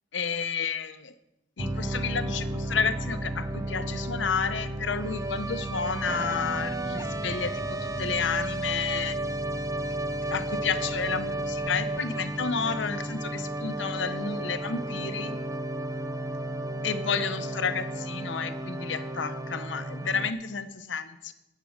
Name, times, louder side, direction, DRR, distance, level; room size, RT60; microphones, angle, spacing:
voice 1, 0.1-1.1 1.6-9.2 10.3-15.4 16.8-21.3, left 6 dB, 80° left, 10 dB, 0.8 m, -31 dB
sound 1, 1.6-20.3, right 1 dB, 15° right, 0.6 m, -33 dB
10.0 x 8.4 x 6.5 m, 0.91 s
head